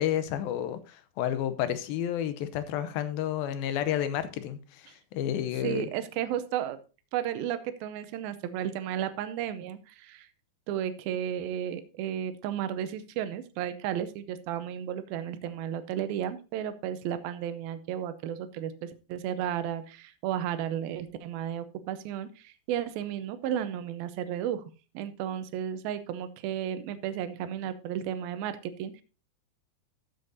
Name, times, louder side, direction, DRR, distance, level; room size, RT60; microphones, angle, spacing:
voice 1, 0.0-5.9, left 10 dB, 80° left, 2.6 m, -31 dB
voice 2, 5.6-6.8 7.1-10.3 10.7-24.6 24.9-29.0, right 10 dB, 80° right, 2.5 m, -33 dB
14.0 x 8.1 x 2.7 m
omnidirectional pair, 4.3 m